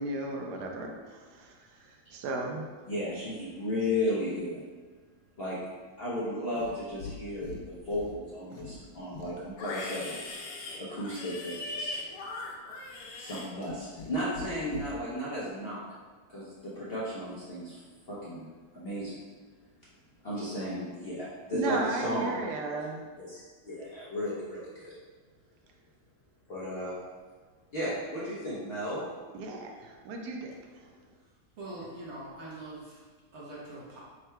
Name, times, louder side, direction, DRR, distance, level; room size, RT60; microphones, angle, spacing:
voice 1, 0.0-2.7 21.5-23.0 29.3-30.5, right 2 dB, 80° right, 1 dB, 1.2 m, -35 dB
voice 2, 2.9-4.6 5.4-5.6 6.0-10.2 10.6-12.0 13.2-15.8 16.3-17.8 18.1-18.5 18.7-19.2 20.2-22.4 23.2-24.9 26.5-27.0 27.7-29.0, left 1 dB, 50° left, -8 dB, 0.7 m, -34 dB
Livestock farm animals working animals, 6.5-7.2 7.4-8.1 8.5-14.1 14.4-14.9, left 3 dB, 85° left, 1.2 m, -40 dB
voice 3, 31.6-33.0 33.3-34.0, right 2 dB, 50° right, -5 dB, 1.0 m, -43 dB
3.7 x 2.2 x 4.3 m, 1.4 s
omnidirectional pair, 1.7 m